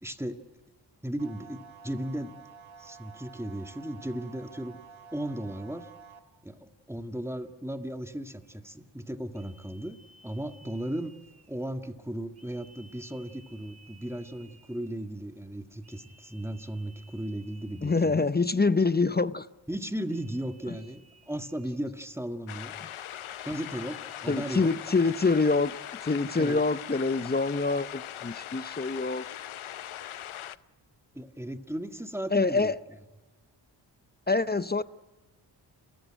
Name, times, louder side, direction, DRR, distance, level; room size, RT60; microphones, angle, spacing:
voice 1, 0.0-0.4 1.0-2.4 2.8-4.8 5.1-5.9 6.4-10.0 10.2-11.2 11.5-18.2 19.7-22.7 23.4-24.7 26.4-26.6 31.1-32.7, right 1 dB, 5° right, 2.0 m, -36 dB
sound 1, 1.2-6.2, right 6 dB, 70° right, 2.4 m, -50 dB
sound 2, 8.4-8.7 9.3-11.7 12.3-15.1 15.8-18.6 20.1-22.0 22.6-24.7, right 2 dB, 30° right, 3.0 m, -59 dB
voice 2, 17.8-19.5 20.7-20.8 24.3-29.3 32.3-32.8 34.3-34.8, left 3 dB, 20° left, 0.6 m, -26 dB
sound 3, 22.5-30.6, left 11 dB, 80° left, 0.8 m, -40 dB
29.5 x 15.0 x 9.0 m
cardioid pair, 50°, 48 cm